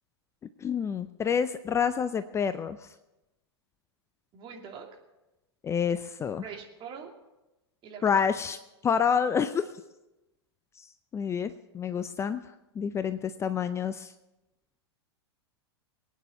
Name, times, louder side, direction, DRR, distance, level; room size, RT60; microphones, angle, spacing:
voice 1, 0.6-2.9 5.6-6.4 8.0-8.6 8.8-9.6 10.8-10.9 11.1-12.4 12.8-14.1, left 7 dB, 20° left, 11 dB, 0.5 m, -28 dB
voice 2, 4.3-4.9 6.4-7.1 7.8-8.2, right 6 dB, 35° right, 2 dB, 2.7 m, -43 dB
22.5 x 9.3 x 5.4 m, 0.99 s
figure-of-eight pair, 100°, 14 cm